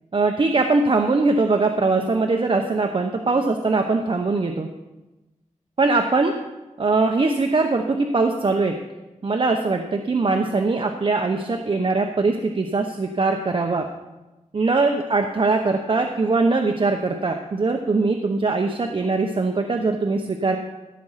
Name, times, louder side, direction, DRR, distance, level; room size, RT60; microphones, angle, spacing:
voice 1, 0.1-4.7 5.8-6.3 6.8-8.8 9.2-13.8 14.5-20.6, right 3 dB, 45° right, 4 dB, 0.9 m, -21 dB
15.5 x 7.9 x 5.7 m, 1.1 s
wide cardioid pair, 120°, 12 cm